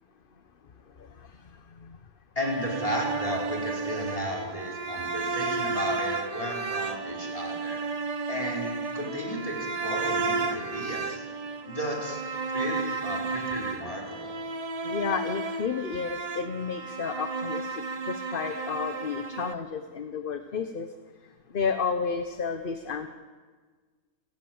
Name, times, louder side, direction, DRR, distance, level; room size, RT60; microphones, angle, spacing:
voice 1, 0.9-2.0 14.8-20.9 21.2-23.1, left 5 dB, 40° left, 8 dB, 1.1 m, -32 dB
voice 2, 2.4-7.8 8.3-11.2 11.6-12.2 12.5-14.4, equal, 25° left, -2 dB, 5.2 m, -34 dB
sound 1, 2.4-19.5, right 4 dB, 30° right, 0.8 m, -33 dB
29.5 x 17.0 x 8.0 m, 1.5 s
omnidirectional pair, 1.5 m